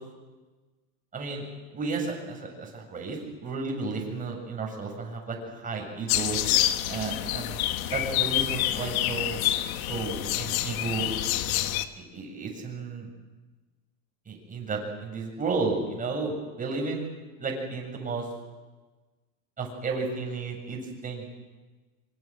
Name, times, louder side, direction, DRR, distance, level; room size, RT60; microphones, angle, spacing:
voice 1, 1.1-1.5 1.7-6.4 6.9-7.6 7.9-9.4 9.8-11.1 12.0-13.1 14.3-17.1 17.4-18.3 19.6-21.2, right 4 dB, 20° right, 1 dB, 7.7 m, -33 dB
sound 1, 6.1-11.9, left 13 dB, 70° left, 1.8 m, -27 dB
25.5 x 25.0 x 7.7 m, 1.2 s
supercardioid pair, 140°, 44 cm